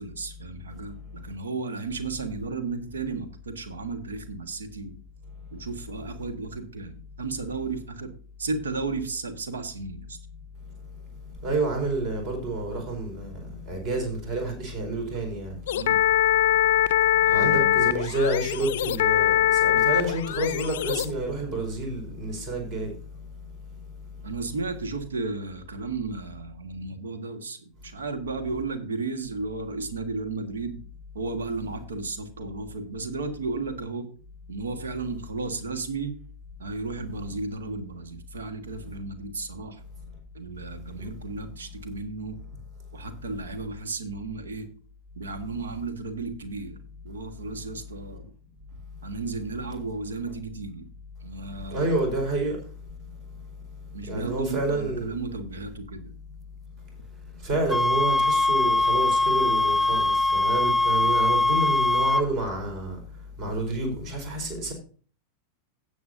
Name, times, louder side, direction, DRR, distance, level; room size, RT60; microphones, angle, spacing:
voice 1, 0.0-4.9 5.5-8.1 8.4-10.2 15.7-16.0 17.2-18.0 24.2-30.8 31.1-34.1 34.5-36.1 36.6-39.8 40.3-42.6 42.9-44.7 45.1-46.8 47.0-48.3 48.7-50.9 51.2-52.0 53.9-56.2, right 3 dB, 70° right, 1.6 m, -34 dB
voice 2, 11.4-15.5 17.3-22.9 51.7-52.6 54.1-55.1 57.4-63.0 63.4-64.7, right 2 dB, 40° right, 4.6 m, -29 dB
sound 1, 15.7-21.1, left 12 dB, 55° left, 0.5 m, -22 dB
sound 2, 57.7-62.3, left 2 dB, 5° right, 0.4 m, -22 dB
17.0 x 7.1 x 2.7 m
figure-of-eight pair, 90°, 0 cm